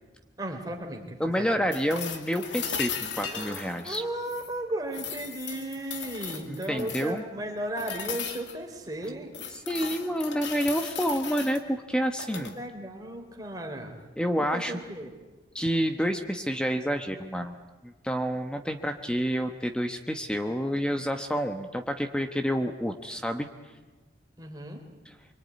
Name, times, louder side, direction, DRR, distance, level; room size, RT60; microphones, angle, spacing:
voice 1, 0.4-1.6 3.1-9.3 12.3-14.0 14.4-15.1 24.4-24.8, right 1 dB, 20° right, 2 dB, 3.5 m, -36 dB
voice 2, 1.2-4.0 6.5-7.2 9.7-12.5 14.2-14.8 15.5-17.5 17.8-23.5, equal, 5° left, 6 dB, 1.1 m, -29 dB
sound 1, 1.7-4.5 4.9-7.2 7.8-8.6 9.0-11.6 12.1-12.5 14.6-14.7, left 7 dB, 80° left, 2.3 m, -37 dB
24.5 x 24.0 x 9.6 m, 1.2 s
head